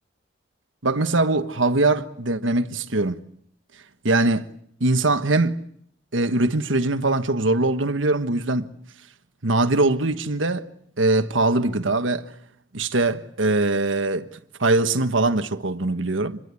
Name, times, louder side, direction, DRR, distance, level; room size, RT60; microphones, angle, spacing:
voice 1, 0.8-3.2 4.0-4.5 4.8-5.7 6.1-8.7 9.4-10.7 11.0-12.3 12.7-16.4, right 2 dB, 85° right, 1.4 m, -22 dB
27.5 x 22.0 x 8.5 m
head